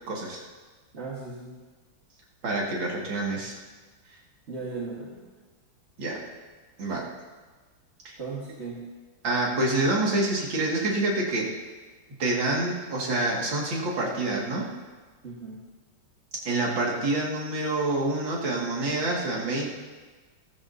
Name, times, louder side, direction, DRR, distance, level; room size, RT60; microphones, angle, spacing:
voice 1, 0.1-0.4 2.4-3.6 6.0-6.2 6.8-7.1 8.0-8.1 9.2-11.5 12.2-14.7 16.4-19.7, right 2 dB, 60° right, -3 dB, 2.9 m, -27 dB
voice 2, 0.9-1.6 4.5-5.3 8.2-8.9 15.2-15.6, right 4 dB, 35° right, -5 dB, 1.7 m, -37 dB
17.5 x 14.5 x 2.8 m, 1.4 s
omnidirectional pair, 2.4 m